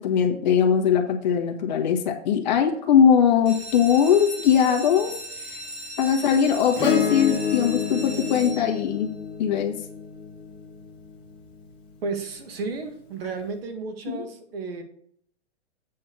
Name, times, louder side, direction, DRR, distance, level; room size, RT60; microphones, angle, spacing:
voice 1, 0.0-5.1 5.4-5.6 6.0-9.1 9.4-9.8 14.1-14.2, left 8 dB, 40° left, 2 dB, 1.6 m, -21 dB
sound 1, 3.3-9.1 9.7-10.2 10.6-10.7 10.9-11.0 11.4-11.6, right 1 dB, 15° right, 2.1 m, -38 dB
Acoustic guitar / Strum, 6.8-11.4 13.2-13.3, left 7 dB, 15° left, 1.4 m, -29 dB
voice 2, 12.0-14.8, right 4 dB, 55° right, 7 dB, 1.9 m, -33 dB
8.4 x 4.6 x 6.9 m, 0.62 s
hypercardioid pair, 160°, 36 cm